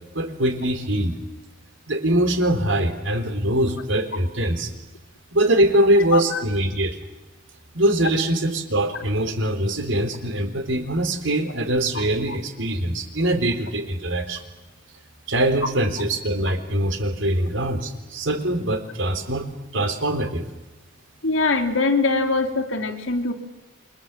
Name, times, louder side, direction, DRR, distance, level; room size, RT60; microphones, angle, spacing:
voice 1, 0.1-1.2 1.9-4.7 5.3-7.0 7.7-14.4 15.3-19.4 19.7-20.5, right 1 dB, 70° right, 7 dB, 3.9 m, -23 dB
voice 2, 21.2-23.3, left 3 dB, 70° left, 6 dB, 3.1 m, -22 dB
29.0 x 24.0 x 7.4 m, 1.1 s
head